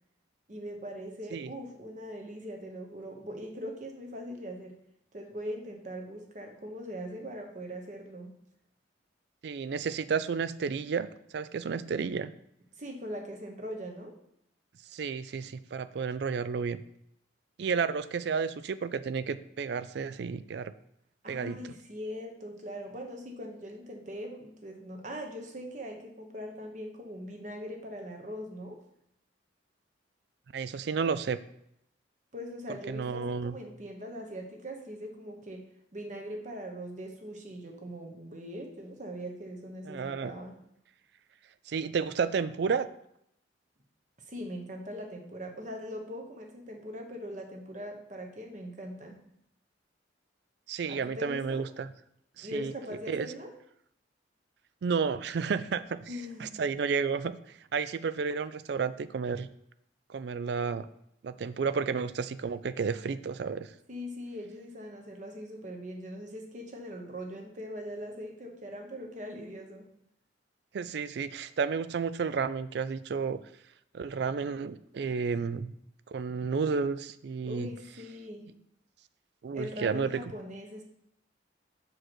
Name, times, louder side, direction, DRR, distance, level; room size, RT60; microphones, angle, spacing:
voice 1, 0.5-4.8 5.1-8.3 12.8-14.1 21.2-28.8 32.3-35.6 35.9-40.6 44.3-49.2 50.9-51.6 52.4-53.5 56.1-56.6 63.9-69.9 77.4-78.6 79.5-80.9, equal, 40° right, 3 dB, 1.0 m, -41 dB
voice 2, 9.4-11.1 11.3-12.3 14.9-16.8 17.6-20.7 21.3-21.6 30.5-31.4 32.9-33.5 39.9-40.3 41.7-42.9 50.7-51.9 52.4-52.7 53.1-53.3 54.8-56.0 56.4-57.4 57.7-59.5 60.1-60.9 61.2-63.7 70.7-73.4 73.9-75.7 76.1-77.7 79.4-80.1, right 5 dB, 60° right, 14 dB, 0.3 m, -31 dB
6.3 x 4.8 x 4.4 m, 0.74 s
head